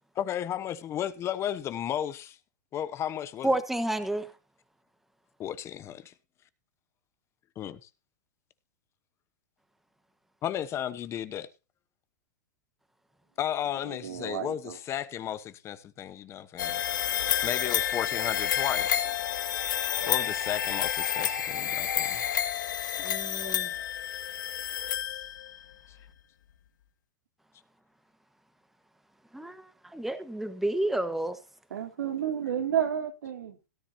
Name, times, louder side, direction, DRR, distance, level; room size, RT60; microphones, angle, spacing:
voice 1, 0.1-2.4 2.7-3.5 5.4-6.1 7.6-7.9 10.4-11.5 13.4-16.8 17.4-19.0 20.1-22.2 23.6-23.7, left 10 dB, 30° left, 1.0 m, -34 dB
voice 2, 3.4-4.3 23.0-23.7 29.3-29.6 29.9-31.4, right 1 dB, 5° right, 1.4 m, -30 dB
voice 3, 13.8-14.8 31.7-33.7, right 9 dB, 85° right, 2.5 m, -31 dB
sound 1, 16.6-25.6, left 10 dB, 85° left, 2.1 m, -29 dB
17.5 x 10.0 x 2.8 m
hypercardioid pair, 135°, 10 cm